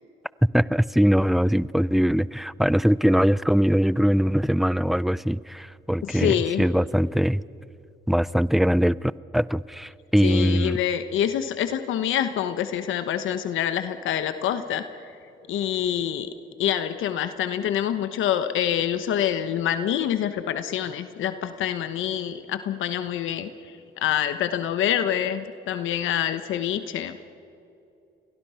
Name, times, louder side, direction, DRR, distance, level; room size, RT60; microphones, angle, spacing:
voice 1, 0.5-7.4 8.1-10.8, equal, ahead, 19 dB, 0.5 m, -22 dB
voice 2, 6.0-6.6 10.2-15.1 15.5-16.3 16.6-27.1, left 10 dB, 80° left, 10 dB, 1.1 m, -26 dB
29.0 x 23.0 x 5.7 m, 2.6 s
cardioid pair, 90°, 20 cm